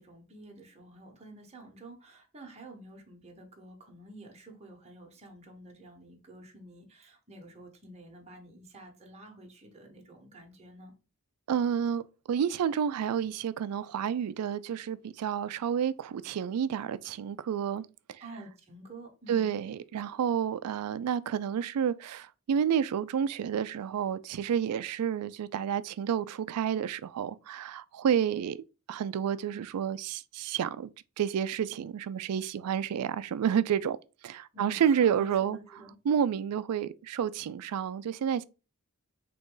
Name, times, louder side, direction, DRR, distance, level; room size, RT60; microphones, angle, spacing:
voice 1, 0.0-10.9 18.2-19.5 34.5-35.9, right 1 dB, 30° right, 0.9 m, -49 dB
voice 2, 11.5-18.2 19.3-28.6 28.9-30.9 31.2-34.0 34.2-35.6 36.1-38.4, right 8 dB, 85° right, 0.3 m, -30 dB
3.9 x 3.0 x 3.7 m
head